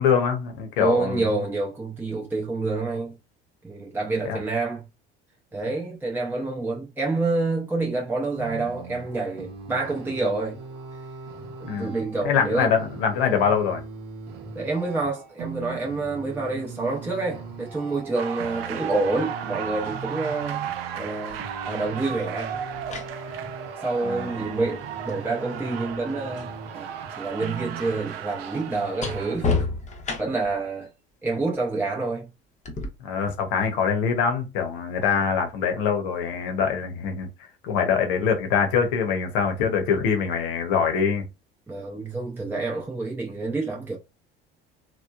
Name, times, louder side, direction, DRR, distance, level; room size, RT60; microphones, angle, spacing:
voice 1, 0.0-1.3 4.2-4.4 11.6-11.9 12.2-13.8 24.0-24.5 33.0-37.3 37.6-41.3, left 6 dB, 70° left, 0.9 m, -24 dB
voice 2, 0.8-3.2 3.6-4.8 5.5-10.6 11.6-12.7 14.5-20.6 21.0-22.6 23.1-29.5 30.2-30.9 31.2-32.3 35.0-35.2 41.7-44.0, right 3 dB, 5° right, 0.6 m, -28 dB
sound 1, 8.3-28.0, right 4 dB, 55° right, 0.9 m, -40 dB
sound 2, 18.1-29.4, right 8 dB, 85° right, 0.4 m, -35 dB
sound 3, 21.3-21.5 22.5-26.6 26.9-30.6 32.7-32.9, left 3 dB, 25° left, 0.7 m, -33 dB
2.9 x 2.2 x 2.3 m
hypercardioid pair, 70°, 30 cm